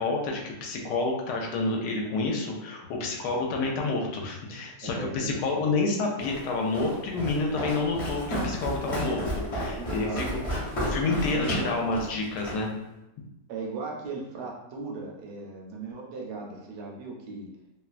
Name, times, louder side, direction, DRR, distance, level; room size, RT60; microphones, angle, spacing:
voice 1, 0.0-9.2 9.5-10.4 10.8-12.7, left 3 dB, 80° left, 0 dB, 1.2 m, -29 dB
voice 2, 4.8-5.8 9.0-9.2 9.8-10.4 11.3-11.7 13.5-17.5, right 4 dB, 75° right, -2 dB, 1.0 m, -38 dB
Walk footsteps, 6.2-12.7, equal, 45° left, 0.4 m, -32 dB
2.9 x 2.2 x 2.4 m, 0.91 s
omnidirectional pair, 1.8 m